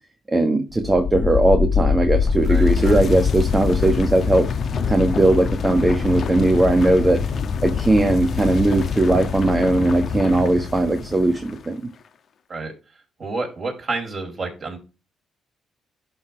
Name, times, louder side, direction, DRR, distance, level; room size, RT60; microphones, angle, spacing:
voice 1, 0.3-4.5 4.9-7.2 7.6-11.8, right 2 dB, 20° right, 1.4 m, -19 dB
sound 1, 0.7-11.5, left 6 dB, 55° left, 1.1 m, -24 dB
voice 2, 2.5-3.0 12.5-12.7 13.2-14.8, right 3 dB, 40° right, 5.0 m, -29 dB
11.5 x 4.1 x 4.5 m
cardioid pair, 90°, 0 cm